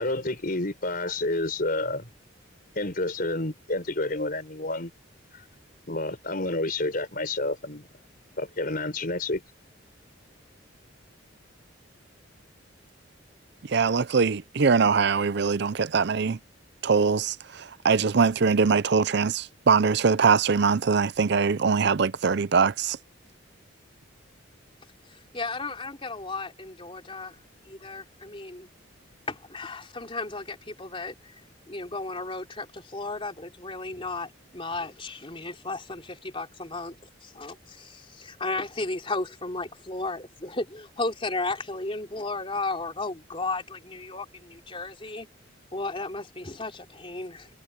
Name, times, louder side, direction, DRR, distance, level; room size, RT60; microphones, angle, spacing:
voice 1, 0.0-2.1 2.7-4.9 5.3-5.4 5.9-7.9 8.4-9.4, left 2 dB, 45° left, 5.0 m, -29 dB
voice 2, 13.7-16.4 16.8-17.3 17.8-23.0, right 5 dB, 55° right, 0.5 m, -22 dB
voice 3, 25.3-27.4 27.7-28.7 29.3-31.3 31.7-36.9 37.2-45.3 45.7-47.5, left 3 dB, 25° left, 3.5 m, -34 dB
head